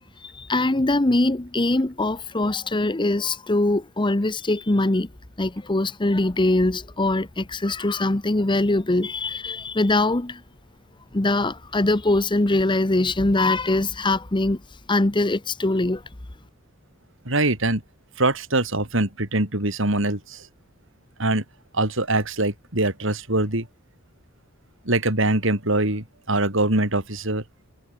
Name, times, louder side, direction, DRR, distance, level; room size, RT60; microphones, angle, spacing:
voice 1, 0.2-5.1 5.4-10.4 11.1-14.6 14.9-16.0, left 2 dB, 25° left, 0.9 m, -22 dB
voice 2, 17.2-17.8 18.2-20.5 21.2-21.4 21.7-23.7 24.8-27.4, right 2 dB, 70° right, 5.0 m, -23 dB
head